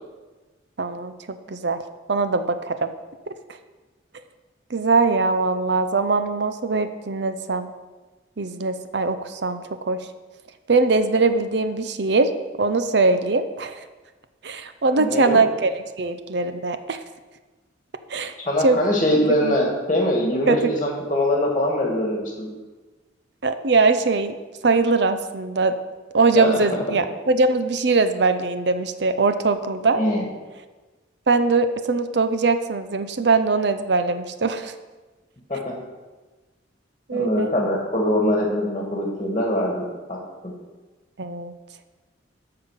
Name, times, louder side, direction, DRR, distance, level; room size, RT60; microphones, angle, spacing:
voice 1, 0.8-1.8 2.1-2.9 4.7-7.7 8.4-10.0 10.7-12.3 12.6-13.8 14.4-17.0 18.1-18.3 18.6-18.8 19.4-19.6 20.5-20.6 23.4-24.4 24.6-25.7 26.1-30.0 31.3-34.7 37.1-37.5 41.2-41.5, right 3 dB, 60° right, 10 dB, 0.6 m, -21 dB
voice 2, 14.9-15.4 18.4-22.5 26.4-26.6 29.9-30.2 35.5-35.7 37.1-39.8 40.1-40.5, left 1 dB, 25° left, -1 dB, 1.7 m, -23 dB
8.8 x 5.8 x 7.2 m, 1.2 s
head